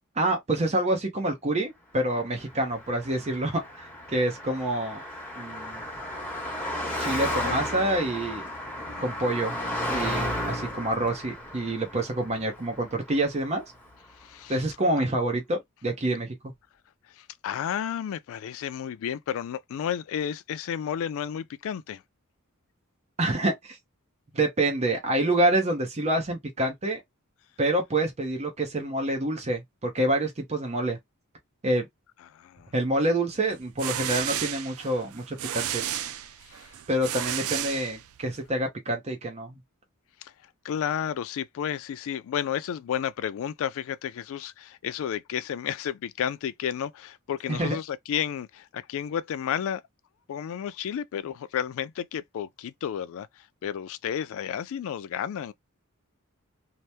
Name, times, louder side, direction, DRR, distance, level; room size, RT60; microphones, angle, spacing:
voice 1, 0.2-5.0 5.4-5.8 7.0-8.4 9.0-9.6 9.9-13.6 14.5-16.4 23.2-23.8 24.3-27.0 27.6-31.0 31.6-31.9 32.7-35.9 36.9-39.6 47.5-47.8, right 1 dB, 30° right, 0.6 m, -27 dB
Car passing by, 2.4-13.9, left 1 dB, 5° left, 1.1 m, -34 dB
voice 2, 14.2-14.5 17.1-22.0 32.3-32.7 36.4-36.7 40.2-40.3 40.6-49.8 50.3-55.5, left 9 dB, 65° left, 0.3 m, -32 dB
sound 1, 33.5-38.4, right 11 dB, 75° right, 0.4 m, -33 dB
2.8 x 2.0 x 3.3 m
head